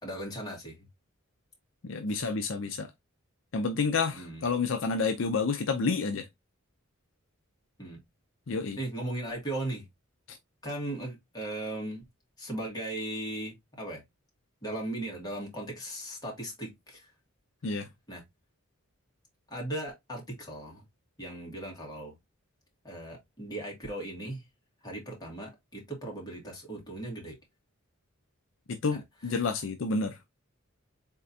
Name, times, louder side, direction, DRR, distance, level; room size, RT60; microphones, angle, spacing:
voice 1, 0.0-0.9 2.1-2.2 4.1-4.5 7.8-8.0 8.8-9.9 10.6-12.0 12.4-14.0 14.6-17.1 18.1-18.2 19.5-20.8 21.2-22.2 22.8-24.4 24.8-27.4 28.9-29.0 29.4-29.5, right 1 dB, 20° left, 2.0 m, -37 dB
voice 2, 1.8-2.9 3.5-6.3 8.5-8.8 10.3-10.4 17.6-17.9 28.7-30.2, left 4 dB, 60° left, 0.5 m, -29 dB
4.2 x 3.6 x 2.7 m
head